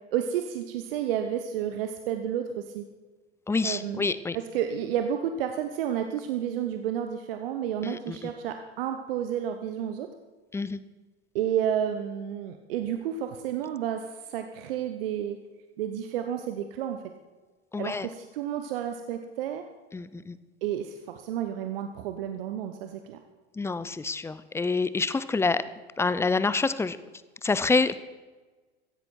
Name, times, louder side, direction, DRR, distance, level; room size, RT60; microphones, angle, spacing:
voice 1, 0.1-2.8 3.6-4.1 4.3-10.1 11.3-15.4 15.8-17.0 17.8-19.6 20.6-23.2, right 9 dB, 60° right, 7 dB, 1.1 m, -31 dB
voice 2, 3.5-4.4 7.8-8.3 10.5-10.8 17.7-18.1 19.9-20.4 23.6-25.7 26.0-27.0 27.4-28.0, left 4 dB, 10° left, 15 dB, 0.6 m, -27 dB
16.5 x 15.0 x 4.4 m, 1.3 s
figure-of-eight pair, 80°, 32 cm